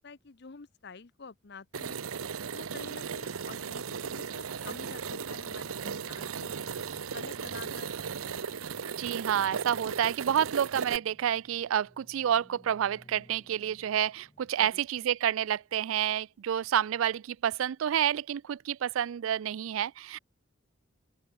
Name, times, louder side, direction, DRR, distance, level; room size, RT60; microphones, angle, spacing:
voice 1, 0.0-2.1 2.5-6.6 7.1-8.1 14.6-14.8, left 4 dB, 50° left, 0.8 m, -48 dB
sound 1, 1.7-11.0, right 6 dB, 90° right, 0.7 m, -36 dB
sound 2, 5.4-14.5, equal, 20° left, 2.8 m, -58 dB
voice 2, 9.0-20.2, right 9 dB, 75° right, 0.3 m, -29 dB
open air
head